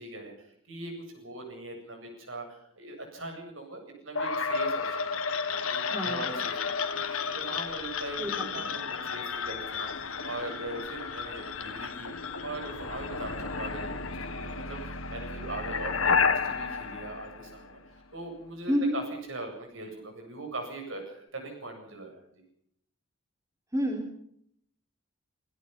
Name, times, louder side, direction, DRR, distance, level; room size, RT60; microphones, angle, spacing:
voice 1, 0.0-12.1 12.4-19.0 19.3-22.2, right 2 dB, 70° right, 3 dB, 7.9 m, -41 dB
sound 1, 4.2-18.0, left 5 dB, 85° left, 1.8 m, -32 dB
voice 2, 5.8-6.4 8.2-8.6 18.7-19.0 23.7-24.1, equal, 15° right, 2 dB, 3.6 m, -30 dB
27.0 x 17.5 x 5.7 m, 0.68 s
head